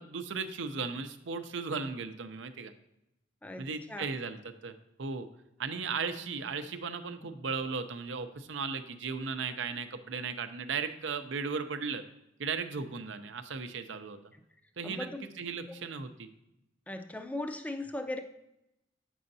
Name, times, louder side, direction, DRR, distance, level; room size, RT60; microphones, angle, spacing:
voice 1, 0.0-2.7 3.6-4.7 5.0-5.3 5.6-12.0 12.4-14.2 14.8-15.1 15.4-16.3, right 5 dB, 80° right, 9 dB, 0.6 m, -36 dB
voice 2, 3.4-4.1 14.8-15.2 16.9-18.2, left 1 dB, 10° left, 7 dB, 0.5 m, -38 dB
8.7 x 6.2 x 2.7 m, 0.86 s
head